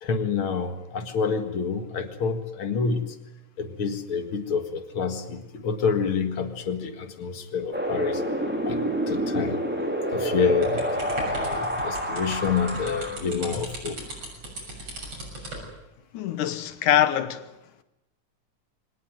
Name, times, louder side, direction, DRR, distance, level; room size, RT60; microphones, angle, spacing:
voice 1, 0.0-3.1 3.6-8.2 8.7-9.6 10.1-11.1 11.3-14.0, left 5 dB, 50° left, 2.4 m, -28 dB
Wind, 7.7-13.2, equal, 5° right, 2.6 m, -28 dB
sound 1, 10.6-15.7, right 2 dB, 55° right, 7.9 m, -38 dB
voice 2, 16.1-17.5, left 11 dB, 90° left, 2.6 m, -23 dB
24.0 x 18.5 x 9.3 m
omnidirectional pair, 3.4 m